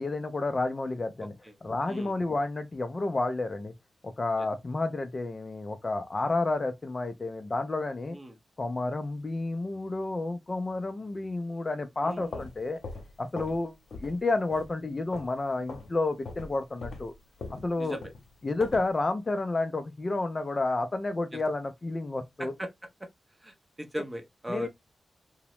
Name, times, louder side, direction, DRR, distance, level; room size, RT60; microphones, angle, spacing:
voice 1, 0.0-1.3 1.6-3.7 4.0-8.2 8.6-12.8 13.2-13.7 14.0-17.1 17.6-18.0 18.4-22.5 24.5-24.7, left 2 dB, 35° left, 0.4 m, -30 dB
sound 1, 12.1-13.6 13.9-14.2 14.5-15.4 15.7-15.9 16.2-18.9, left 3 dB, 75° left, 0.8 m, -41 dB
voice 2, 17.8-18.1 22.4-22.7 23.4-24.7, equal, 15° right, 0.6 m, -38 dB
2.8 x 2.0 x 2.9 m
wide cardioid pair, 105°, 0 cm